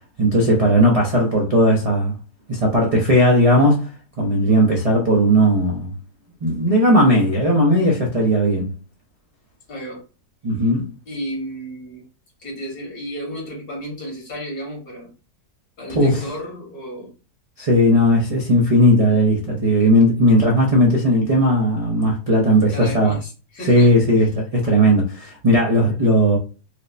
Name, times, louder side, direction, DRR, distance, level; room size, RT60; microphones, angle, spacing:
voice 1, 0.2-2.1 2.5-3.9 4.2-5.9 6.4-8.7 10.4-10.9 15.9-16.2 17.6-23.2 23.6-26.4, equal, 60° right, 0.3 m, -16 dB
voice 2, 9.7-10.0 10.6-10.7 11.1-12.1 12.4-15.1 15.8-17.1 22.7-24.3, equal, 70° left, 2.0 m, -33 dB
4.4 x 2.1 x 2.5 m
omnidirectional pair, 1.7 m